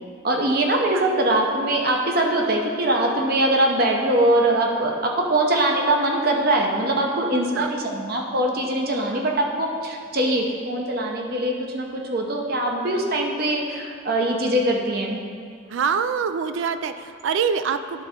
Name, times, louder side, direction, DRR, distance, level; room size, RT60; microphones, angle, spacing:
voice 1, 0.2-15.2, right 1 dB, 50° right, 0 dB, 0.7 m, -22 dB
voice 2, 15.7-18.0, right 6 dB, 70° right, 10 dB, 0.3 m, -25 dB
10.5 x 3.9 x 4.3 m, 2.2 s
head